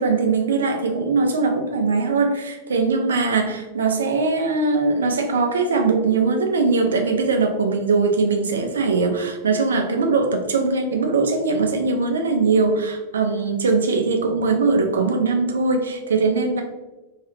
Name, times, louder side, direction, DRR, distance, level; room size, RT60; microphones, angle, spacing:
voice 1, 0.0-16.6, right 4 dB, 65° right, 4 dB, 0.5 m, -21 dB
2.8 x 2.8 x 3.2 m, 1.1 s
figure-of-eight pair, 90°, 0 cm